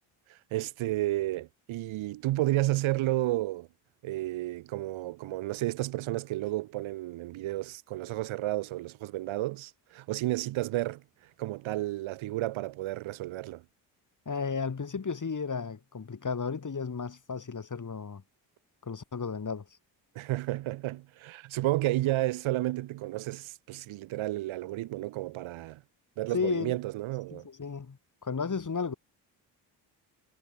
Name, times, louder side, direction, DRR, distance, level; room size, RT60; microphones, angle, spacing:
voice 1, 0.3-3.7 4.0-11.0 11.4-13.6 20.1-25.8 26.2-27.5, right 16 dB, 75° right, 1.5 m, -32 dB
voice 2, 14.3-18.2 18.8-19.7 26.3-26.8 27.3-28.9, left 5 dB, 40° left, 7.2 m, -33 dB
supercardioid pair, 55°, 48 cm